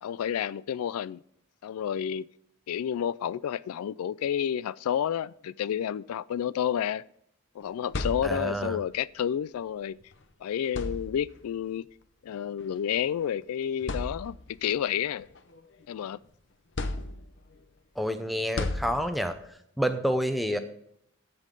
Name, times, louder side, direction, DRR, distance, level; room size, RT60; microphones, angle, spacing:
voice 1, 0.0-1.2 1.6-2.3 2.7-7.0 7.5-10.0 10.4-11.9 12.2-15.3 15.9-16.2, left 9 dB, 80° left, 0.3 m, -30 dB
sound 1, 7.6-8.7 10.0-10.1 10.6-11.5 12.6-12.8 13.3-13.4 13.8-14.6 15.1-16.2 16.8-17.6 18.6-19.5, left 2 dB, 55° left, 0.7 m, -35 dB
voice 2, 8.2-8.8 18.0-19.4 19.8-20.6, equal, ahead, 0.6 m, -28 dB
15.5 x 5.4 x 3.9 m
head